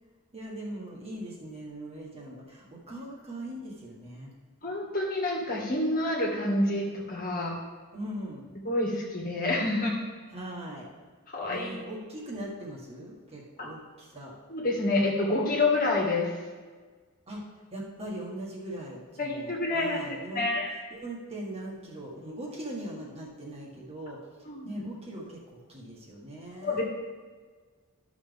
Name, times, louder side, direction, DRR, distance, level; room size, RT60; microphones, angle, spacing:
voice 1, 0.3-4.3 7.9-8.4 10.3-10.9 11.5-14.3 17.3-17.4 17.7-20.5 20.9-24.2 24.6-26.8, right 1 dB, 30° right, -3 dB, 1.7 m, -40 dB
voice 2, 4.6-7.6 8.6-10.0 11.3-11.7 13.6-13.7 14.5-16.3 19.2-20.7 24.5-24.8 26.6-26.8, left 2 dB, 40° left, -2 dB, 1.7 m, -28 dB
13.0 x 6.2 x 3.5 m, 1.4 s
head